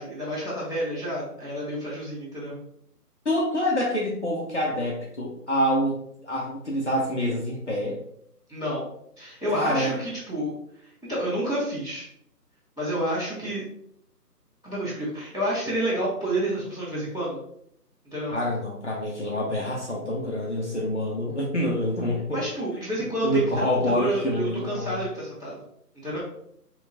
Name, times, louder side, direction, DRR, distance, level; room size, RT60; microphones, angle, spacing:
voice 1, 0.0-2.6 8.5-8.8 9.2-10.5 10.8-12.1 12.8-13.6 14.6-17.4 18.1-18.4 22.3-25.6 26.0-26.2, right 1 dB, 5° left, -19 dB, 0.9 m, -29 dB
voice 2, 3.2-6.0 6.2-8.0 9.5-10.0 18.3-22.4 23.2-25.0, left 1 dB, 45° left, -3 dB, 0.7 m, -26 dB
5.9 x 2.3 x 2.7 m, 0.71 s
figure-of-eight pair, 160°, 48 cm